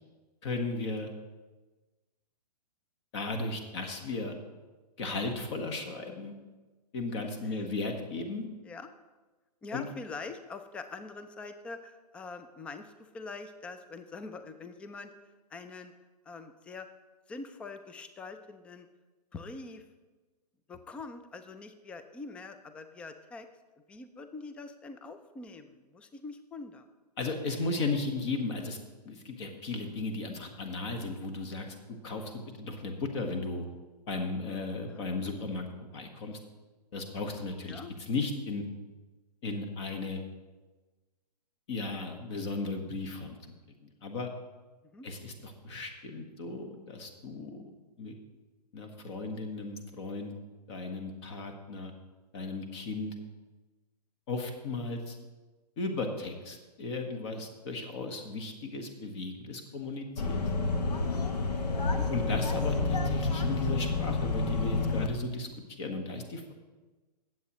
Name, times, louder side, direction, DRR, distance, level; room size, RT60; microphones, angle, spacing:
voice 1, 0.4-1.1 3.1-4.4 5.0-6.3 6.9-8.5 9.7-9.9 27.2-28.8 29.0-31.7 32.0-33.6 34.1-35.6 35.9-36.4 36.9-38.6 39.4-40.2 41.7-43.4 43.8-44.3 45.0-48.1 48.7-50.3 50.7-51.9 52.3-53.1 54.3-55.2 55.8-60.5 62.1-66.5, left 3 dB, 40° left, 5 dB, 1.4 m, -35 dB
voice 2, 9.6-15.1 15.5-15.9 16.3-16.9 17.3-18.9 19.3-19.8 20.7-23.5 23.9-26.9 34.9-35.0 37.7-37.9 44.9-45.1 61.8-62.1, left 3 dB, 5° left, 9 dB, 0.3 m, -44 dB
sound 1, 60.2-65.1, left 3 dB, 70° left, 1.1 m, -29 dB
17.5 x 7.6 x 3.0 m, 1.2 s
hypercardioid pair, 130°, 21 cm